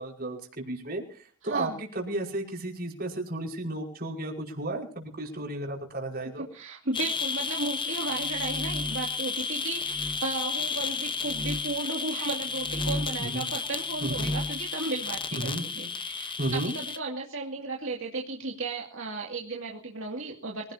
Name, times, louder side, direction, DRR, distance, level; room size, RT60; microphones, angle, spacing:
voice 1, 0.0-6.5 13.2-13.4 14.0-14.3 15.3-15.7 16.4-16.7, right 1 dB, 45° right, 0 dB, 5.2 m, -33 dB
voice 2, 1.4-1.8 6.4-20.7, right 3 dB, 70° right, -1 dB, 2.4 m, -35 dB
sound 1, 6.9-17.0, left 5 dB, 25° left, 1.1 m, -33 dB
sound 2, 8.2-9.1 9.9-10.2 11.2-11.7 12.5-13.3 13.9-14.6, left 1 dB, 15° right, 1.3 m, -35 dB
25.0 x 17.0 x 2.8 m, 0.43 s
head